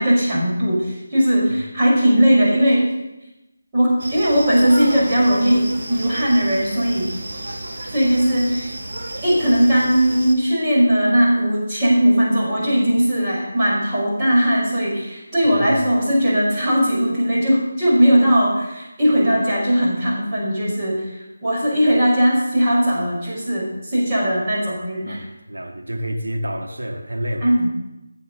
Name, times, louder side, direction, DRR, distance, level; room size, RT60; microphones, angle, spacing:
voice 1, 0.0-2.9 3.7-7.1 7.9-8.7 9.2-25.2 27.4-27.7, equal, 20° right, 5.5 m, -18 dB
sound 1, 4.0-10.4, right 1 dB, 60° right, 2.7 m, -32 dB
voice 2, 25.1-27.5, equal, 85° right, 2.1 m, -29 dB
16.5 x 7.6 x 6.8 m
figure-of-eight pair, 160°, 0 cm